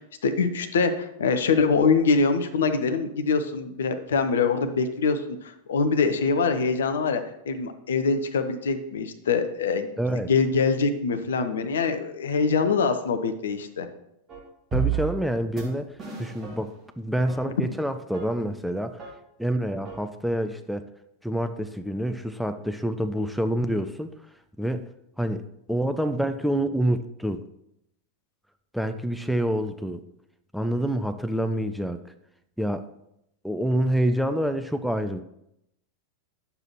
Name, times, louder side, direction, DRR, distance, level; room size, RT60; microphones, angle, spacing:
voice 1, 0.0-9.9 10.3-13.9, left 4 dB, 65° left, 9 dB, 0.6 m, -24 dB
voice 2, 10.0-10.3 14.7-19.1 19.4-20.9 21.2-24.2 24.6-24.9 25.2-25.4 25.7-27.4 28.7-30.0 30.5-32.1 32.6-32.9 33.4-35.2, right 1 dB, ahead, 8 dB, 0.4 m, -27 dB
sound 1, 14.3-14.4 14.7-15.3 15.6-15.7 16.0-16.8 17.3-17.4 18.1-18.3 19.0-19.1 19.9-20.0, right 9 dB, 25° right, 1.9 m, -31 dB
9.7 x 6.8 x 2.9 m, 0.81 s
figure-of-eight pair, 90°, 0 cm